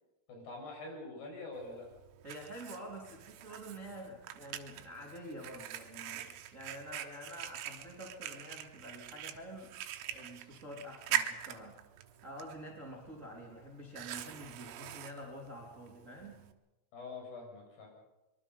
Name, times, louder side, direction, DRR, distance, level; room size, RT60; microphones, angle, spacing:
voice 1, 0.3-1.9 16.9-17.9, left 3 dB, 55° left, 0 dB, 8.4 m, -45 dB
Fire, 1.6-16.5, right 12 dB, 90° right, 3.9 m, -43 dB
voice 2, 2.2-9.7 10.1-11.8 12.2-16.4, equal, 15° right, -2 dB, 3.1 m, -47 dB
24.5 x 23.0 x 5.5 m, 1.0 s
omnidirectional pair, 5.9 m